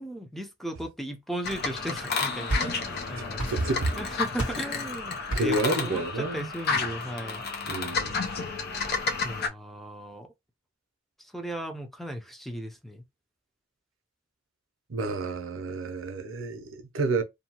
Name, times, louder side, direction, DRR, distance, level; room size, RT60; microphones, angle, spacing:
voice 1, 0.0-3.4 4.0-7.4 8.7-10.3 11.2-13.0, right 1 dB, ahead, 0.5 m, -37 dB
sound 1, 1.4-9.5, left 4 dB, 55° left, 0.6 m, -31 dB
sound 2, 2.1-3.0 3.4-4.0 4.4-4.7 5.3-5.7, right 1 dB, 70° left, 1.3 m, -32 dB
voice 2, 3.5-4.0 5.3-6.5 7.6-8.2 14.9-17.2, right 2 dB, 85° right, 0.6 m, -29 dB
2.7 x 2.2 x 2.8 m
head